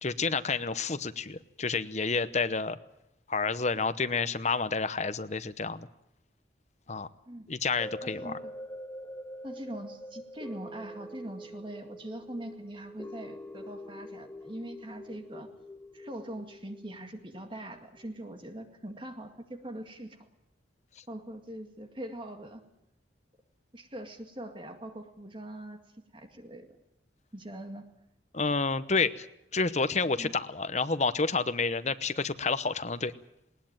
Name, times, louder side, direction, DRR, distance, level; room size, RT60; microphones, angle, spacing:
voice 1, 0.0-2.8 3.3-5.9 6.9-7.1 7.5-8.3 28.3-29.3 29.5-33.1, left 4 dB, 35° left, 12 dB, 0.9 m, -29 dB
sound 1, 7.8-18.2 18.6-18.7, equal, 10° left, 1.0 m, -45 dB
voice 2, 8.0-8.5 9.4-15.5 15.9-20.2 21.1-22.6 23.7-25.8 26.1-26.8 27.3-27.9 30.2-30.3, right 1 dB, 25° right, 6 dB, 2.1 m, -42 dB
20.0 x 19.5 x 9.0 m, 0.82 s
head